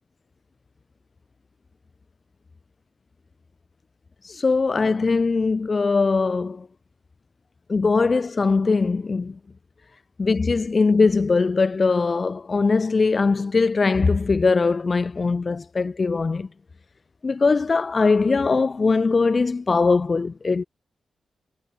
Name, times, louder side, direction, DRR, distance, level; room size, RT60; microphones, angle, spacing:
voice 1, 4.2-6.7 7.7-9.4 10.2-16.5 17.2-20.7, left 4 dB, 40° left, 1.0 m, -21 dB
cardioid pair, 70°, 0 cm